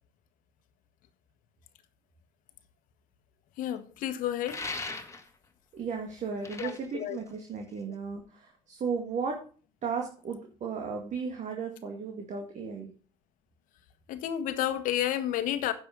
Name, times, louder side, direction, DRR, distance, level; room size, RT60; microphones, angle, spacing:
voice 1, 3.6-4.7 6.6-7.2 14.1-15.7, left 11 dB, 65° left, 1.4 m, -31 dB
sound 1, 4.5-5.5 6.2-7.9, left 3 dB, 20° left, 1.9 m, -39 dB
voice 2, 5.7-9.4 9.8-12.9, right 5 dB, 50° right, 2.2 m, -35 dB
10.0 x 6.5 x 5.3 m
hypercardioid pair, 65°, 15 cm